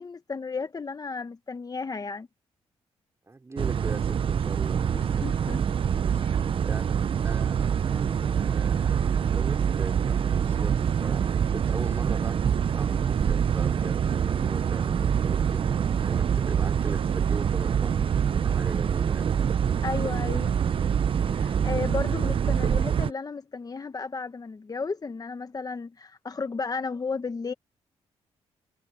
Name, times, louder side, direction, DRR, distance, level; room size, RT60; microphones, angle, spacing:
voice 1, 0.0-2.3 4.9-5.6 6.2-6.4 19.8-20.6 21.3-27.5, left 4 dB, 35° left, 1.4 m, -34 dB
voice 2, 3.3-5.3 6.0-6.2 6.6-7.0 7.2-12.5 12.7-19.4, right 3 dB, 25° right, 4.6 m, -41 dB
sound 1, 3.6-23.1, right 8 dB, 50° right, 0.7 m, -25 dB
cardioid pair, 75°, 11 cm